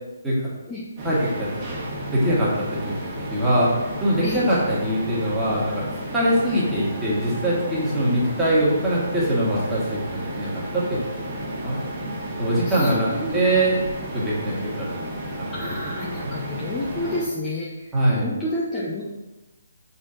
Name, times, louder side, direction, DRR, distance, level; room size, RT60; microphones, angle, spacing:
voice 1, 1.0-1.5 2.1-3.0 3.3-3.7 4.0-5.8 6.1-11.3 11.6-11.8 12.4-13.8 14.1-14.9 16.1-16.3 17.9-18.3, right 1 dB, 5° right, -8 dB, 2.0 m, -22 dB
sound 1, 1.0-17.2, right 1 dB, 20° right, 1.8 m, -32 dB
voice 2, 4.2-4.6 12.6-13.4 15.5-19.1, left 1 dB, 15° left, -7 dB, 0.9 m, -30 dB
6.3 x 4.3 x 3.9 m, 1.1 s
figure-of-eight pair, 140°, 0 cm